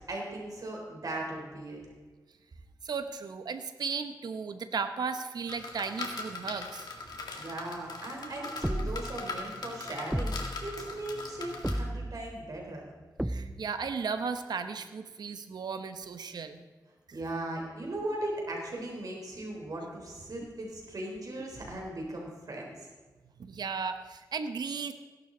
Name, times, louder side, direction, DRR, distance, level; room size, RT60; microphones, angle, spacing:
voice 1, 0.0-1.8 7.4-12.8 17.1-22.7, right 1 dB, 60° right, -1 dB, 3.8 m, -38 dB
voice 2, 2.8-6.9 13.2-16.6 23.4-24.9, right 5 dB, 80° right, 9 dB, 1.0 m, -35 dB
sound 1, 5.5-11.8, left 3 dB, 75° left, 2.0 m, -40 dB
sound 2, 8.6-9.2 10.1-10.7 11.6-12.3 13.2-13.8, right 1 dB, 5° right, 0.5 m, -33 dB
17.0 x 11.0 x 3.9 m, 1.3 s
cardioid pair, 65°, 7 cm